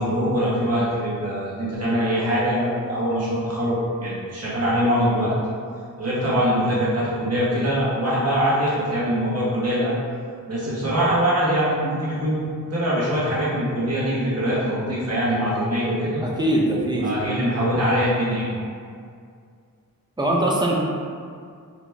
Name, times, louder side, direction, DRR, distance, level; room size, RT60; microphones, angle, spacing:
voice 1, 0.0-5.3 6.0-9.9 10.5-16.2 17.0-18.5, equal, 45° right, -8 dB, 1.5 m, -23 dB
voice 2, 16.2-17.1 20.2-20.8, right 1 dB, 10° right, -3 dB, 0.6 m, -22 dB
4.2 x 2.9 x 3.4 m, 2.2 s
wide cardioid pair, 95°, 36 cm